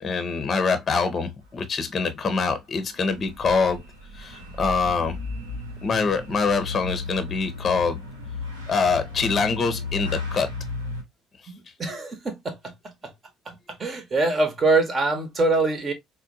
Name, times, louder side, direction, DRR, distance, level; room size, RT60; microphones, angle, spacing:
voice 1, 0.0-3.8 4.1-5.2 5.8-8.0 8.7-10.5, left 4 dB, 35° left, 0.7 m, -24 dB
sound 1, 2.9-11.0, left 3 dB, 85° right, 0.9 m, -35 dB
voice 2, 11.5-12.7 13.0-13.1 13.5-13.6 13.8-15.9, right 3 dB, 35° right, 1.0 m, -24 dB
4.3 x 2.2 x 2.6 m
figure-of-eight pair, 55°, 0 cm